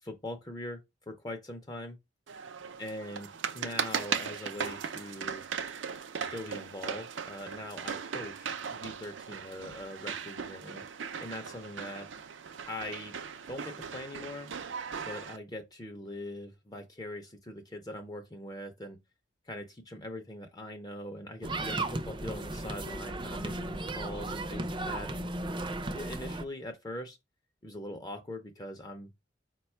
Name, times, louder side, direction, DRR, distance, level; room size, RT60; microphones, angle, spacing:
voice 1, 0.0-2.0 2.8-3.3 3.5-5.4 6.3-10.8 11.2-12.1 12.7-13.1 13.4-14.5 15.1-19.0 19.4-25.2 25.9-27.2 27.6-29.1, left 1 dB, 20° left, 0.5 m, -42 dB
sound 1, 2.3-15.4, right 7 dB, 85° right, 0.5 m, -38 dB
sound 2, 21.4-26.4, right 2 dB, 25° right, 0.5 m, -35 dB
4.8 x 2.2 x 4.3 m
head